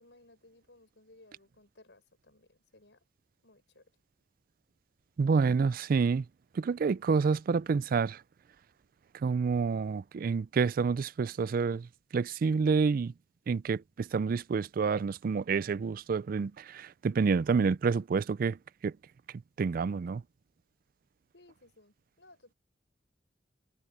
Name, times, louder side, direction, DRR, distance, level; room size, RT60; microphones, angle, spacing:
voice 1, 0.0-3.0 3.4-3.9 21.3-22.6, left 2 dB, 90° left, 5.0 m, -60 dB
voice 2, 5.2-6.2 6.6-8.2 9.2-11.9 12.1-13.1 13.5-18.6 18.8-18.9 19.6-20.2, right 5 dB, 55° right, 0.4 m, -28 dB
head